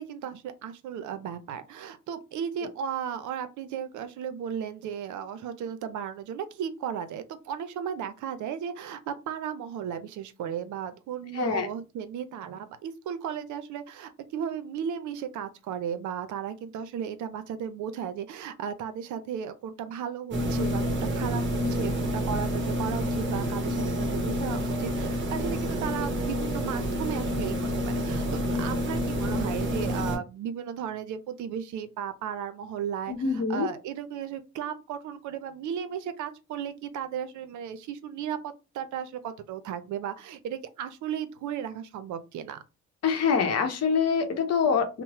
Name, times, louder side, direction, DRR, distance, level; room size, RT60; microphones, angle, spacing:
voice 1, 0.0-42.6, right 8 dB, 75° right, 0.5 m, -35 dB
voice 2, 11.3-11.7 33.1-33.7 43.0-45.0, left 6 dB, 55° left, 0.8 m, -25 dB
creepy breathing, 20.3-30.2, equal, 40° right, 0.8 m, -28 dB
2.9 x 2.0 x 2.9 m
cardioid pair, 90°, 30 cm